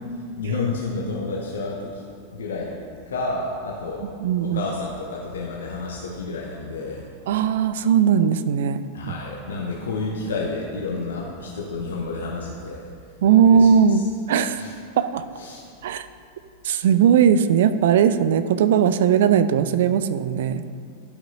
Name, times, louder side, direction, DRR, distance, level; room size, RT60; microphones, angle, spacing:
voice 1, 0.4-2.0 2.3-2.8 3.1-4.1 4.4-7.1 8.9-12.9 13.4-14.0 14.4-14.7 15.4-15.6, left 3 dB, 65° left, -2 dB, 0.8 m, -30 dB
voice 2, 4.2-4.6 7.3-8.8 13.2-14.0 14.3-14.7 15.0-15.2 15.8-16.1 16.6-20.6, right 8 dB, 55° right, 12 dB, 0.3 m, -18 dB
11.5 x 5.7 x 2.8 m, 2.3 s
figure-of-eight pair, 90°, 0 cm